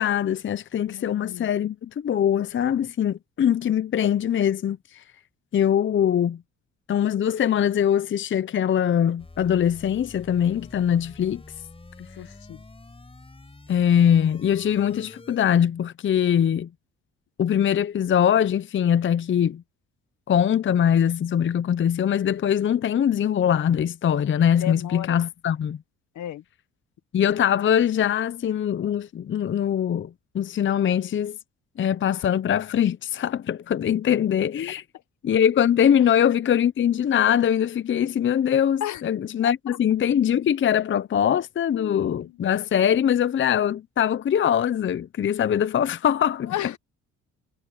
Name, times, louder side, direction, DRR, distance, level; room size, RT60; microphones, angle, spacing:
voice 1, 0.0-5.0 5.5-6.4 6.9-11.4 13.7-16.7 17.4-19.6 20.3-25.8 27.1-31.4 31.8-34.8 35.2-46.7, left 9 dB, 40° left, 0.6 m, -22 dB
voice 2, 0.9-1.5 12.2-12.6 24.5-25.2 26.1-26.4 36.0-36.1 38.8-39.0 39.4-39.5 41.7-42.3 46.5-46.8, left 12 dB, 70° left, 1.2 m, -34 dB
sound 1, 9.2-15.4, left 2 dB, 20° left, 5.4 m, -47 dB
cardioid pair, 90°, 30 cm